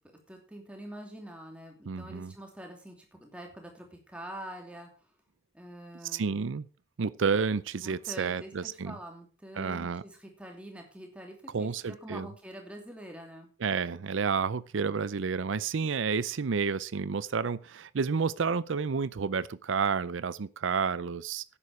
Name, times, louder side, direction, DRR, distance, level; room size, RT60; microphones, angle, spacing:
voice 1, 0.3-4.9 5.5-6.3 7.8-13.5, right 1 dB, 5° right, 2.7 m, -45 dB
voice 2, 1.9-2.3 6.1-6.6 7.0-9.0 9.6-10.0 11.5-12.3 13.6-21.4, right 5 dB, 80° right, 0.5 m, -30 dB
11.0 x 9.9 x 4.9 m
head